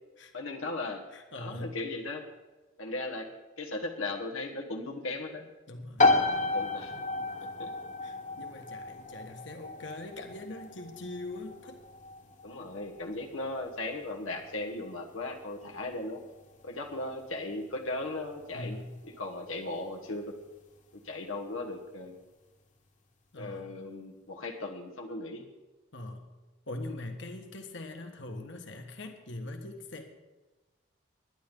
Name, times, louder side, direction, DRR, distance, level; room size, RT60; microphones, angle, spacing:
voice 1, 0.3-1.0 1.3-2.2 2.8-3.3 3.6-5.5 6.5-6.9 7.4-7.7 12.4-16.2 16.6-18.8 19.1-20.3 20.9-22.2 23.4-25.5, left 2 dB, 90° left, 2 dB, 1.3 m, -37 dB
voice 2, 1.1-1.7 5.7-6.1 7.3-7.5 8.0-11.8 18.5-18.9 23.3-23.7 25.9-26.2 26.7-30.0, left 2 dB, 65° left, 5 dB, 1.5 m, -42 dB
sound 1, 6.0-20.5, left 3 dB, 35° left, 1.4 m, -33 dB
21.0 x 10.5 x 3.8 m, 1.2 s
head